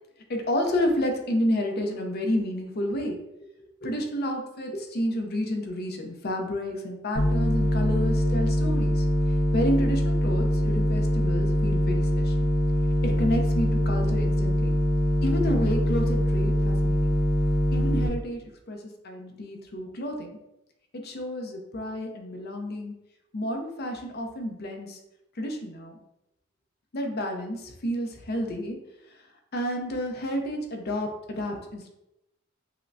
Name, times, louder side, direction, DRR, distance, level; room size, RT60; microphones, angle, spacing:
voice 1, 0.3-3.2 3.6-9.0 9.5-12.3 13.0-14.7 15.2-17.2 17.7-18.4 18.7-20.4 20.9-22.9 23.3-25.0 25.4-26.0 26.9-28.8 29.5-31.9, equal, 50° left, 3 dB, 0.6 m, -30 dB
sound 1, 7.2-18.1, equal, 80° left, 1.0 m, -23 dB
5.6 x 2.1 x 2.5 m, 0.89 s
head